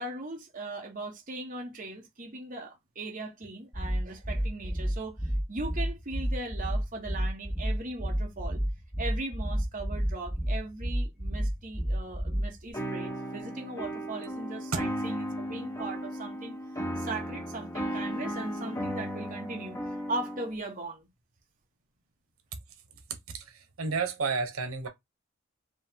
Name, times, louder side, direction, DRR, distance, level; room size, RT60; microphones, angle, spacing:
voice 1, 0.0-8.6 9.0-16.6 17.0-19.8 20.1-21.0, right 2 dB, 40° right, 1.2 m, -39 dB
sound 1, 3.7-12.7, equal, ahead, 0.8 m, -30 dB
sound 2, 12.7-20.5, equal, 15° left, 1.1 m, -35 dB
voice 2, 23.3-24.9, right 4 dB, 90° right, 1.2 m, -31 dB
5.2 x 2.3 x 3.6 m
head